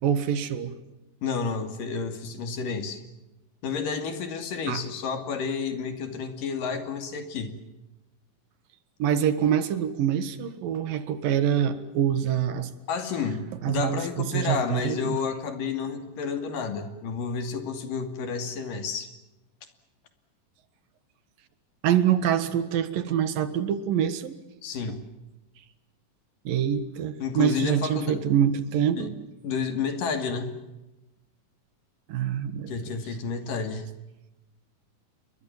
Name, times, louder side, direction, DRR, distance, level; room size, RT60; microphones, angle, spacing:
voice 1, 0.0-0.7 4.7-4.8 9.0-12.7 13.6-15.2 21.8-24.4 24.9-25.0 26.4-29.1 32.1-32.7, right 9 dB, 75° right, 13 dB, 3.3 m, -25 dB
voice 2, 1.2-3.0 3.6-7.6 12.9-19.1 24.6-25.0 27.2-28.2 29.0-29.1 29.4-30.6 32.7-33.9, left 5 dB, 70° left, 8 dB, 4.2 m, -30 dB
29.5 x 23.0 x 7.3 m, 0.98 s
omnidirectional pair, 4.1 m